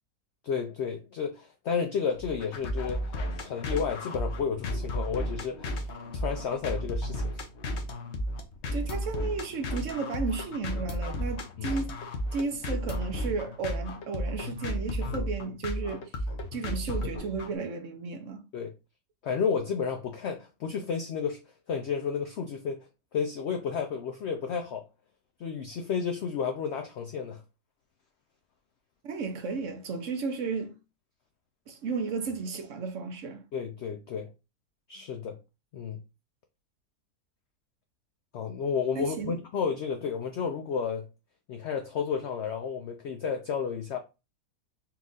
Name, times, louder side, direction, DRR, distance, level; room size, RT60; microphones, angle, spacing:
voice 1, 0.4-7.4 11.6-11.7 15.0-15.2 18.5-18.7 19.2-21.4 21.7-22.8 23.1-24.8 25.4-27.4 33.5-34.3 34.9-35.4 35.7-36.0 38.3-41.1 41.5-44.0, left 6 dB, 90° left, 0.6 m, -32 dB
sound 1, 2.2-17.5, equal, 55° left, 0.9 m, -33 dB
voice 2, 8.7-12.0 12.3-16.0 16.5-18.4 29.0-30.7 31.7-33.4 38.9-39.4, right 4 dB, 65° right, 0.9 m, -33 dB
4.3 x 2.4 x 3.8 m
omnidirectional pair, 1.7 m